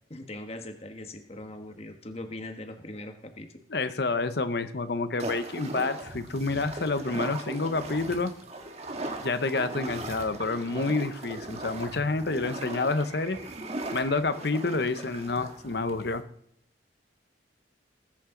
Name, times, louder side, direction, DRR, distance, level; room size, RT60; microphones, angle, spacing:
voice 1, 0.1-3.5, left 1 dB, 35° left, 6 dB, 1.4 m, -40 dB
voice 2, 3.7-8.3 9.2-13.4 13.9-16.2, left 3 dB, 60° left, 11 dB, 0.9 m, -28 dB
sound 1, 5.2-16.2, right 2 dB, 35° right, 1.5 m, -38 dB
20.0 x 8.7 x 3.9 m, 0.68 s
head